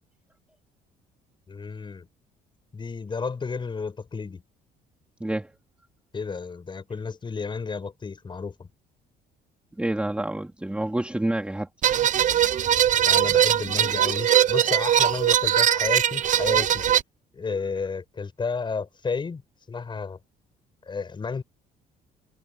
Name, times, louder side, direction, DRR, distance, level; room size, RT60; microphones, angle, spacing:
voice 1, 1.5-2.1 2.7-4.4 6.1-8.7 13.0-16.9 17.3-19.4 19.7-20.2 20.9-21.4, left 5 dB, 30° left, 5.8 m, -32 dB
voice 2, 9.8-11.7, right 1 dB, 5° right, 2.8 m, -28 dB
sound 1, 11.8-17.0, right 10 dB, 50° right, 0.8 m, -21 dB
cardioid pair, 110°, 17 cm